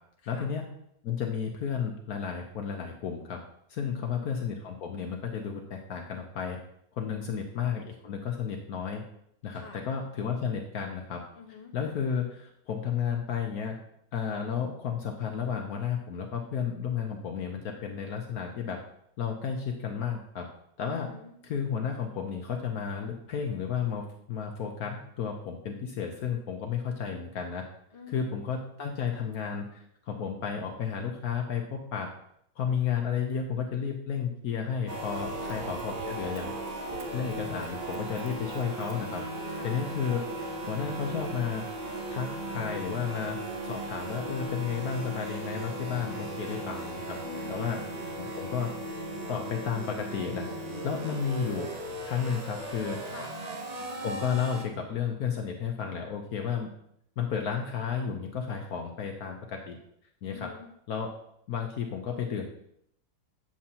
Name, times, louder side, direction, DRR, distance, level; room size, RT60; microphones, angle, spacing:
voice 1, 0.3-0.6 1.0-3.4 3.7-6.6 6.9-9.0 9.4-11.2 11.7-13.8 14.1-18.8 19.2-20.5 20.8-21.1 21.4-27.6 28.1-29.7 30.1-32.1 32.6-36.5 37.1-39.2 39.6-41.7 42.1-47.2 47.5-47.8 48.2-48.7 49.3-50.5 50.8-53.0 54.0-56.7 57.2-59.8 60.2-60.5 60.9-61.1 61.5-62.5, left 7 dB, 65° left, 2 dB, 1.2 m, -32 dB
voice 2, 3.8-4.3 7.1-7.5 9.5-9.9 11.3-11.7 20.9-21.4 27.9-28.4 35.3-35.8 39.5-39.8 47.2-48.0 50.6-51.1 53.0-53.3 60.3-60.7, left 4 dB, 25° left, -2 dB, 1.1 m, -48 dB
sound 1, 34.9-54.6, right 1 dB, 65° right, 0.4 m, -37 dB
Run, 35.1-40.4 41.0-41.1, right 7 dB, 80° right, 1.3 m, -52 dB
8.5 x 7.3 x 2.8 m, 0.73 s
omnidirectional pair, 1.8 m